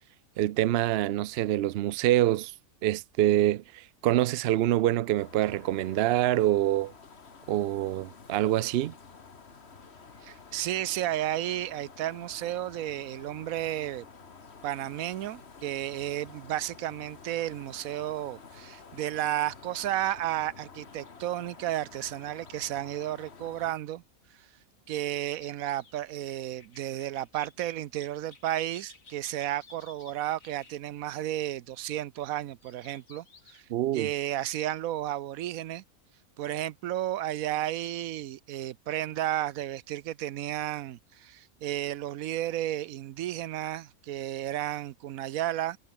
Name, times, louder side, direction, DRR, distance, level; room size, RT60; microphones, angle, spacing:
voice 1, 0.4-2.5 2.8-6.9 7.5-8.9 33.7-34.1, right 14 dB, 65° right, 0.6 m, -25 dB
sound 1, 5.2-23.7, left 5 dB, 50° left, 2.0 m, -50 dB
voice 2, 10.2-14.0 14.6-24.0 24.9-33.6 33.9-35.8 36.4-45.8, right 13 dB, 90° right, 1.1 m, -33 dB
sound 2, 24.9-33.6, left 4 dB, 75° left, 2.9 m, -57 dB
omnidirectional pair, 1.4 m